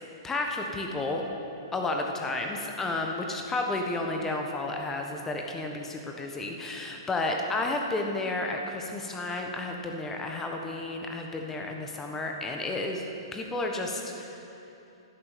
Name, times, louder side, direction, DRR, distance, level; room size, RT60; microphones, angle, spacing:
voice 1, 0.2-1.2 1.7-13.0 13.3-14.4, left 2 dB, 15° left, 2 dB, 1.3 m, -32 dB
11.5 x 8.5 x 6.8 m, 2.8 s
hypercardioid pair, 125°, 2 cm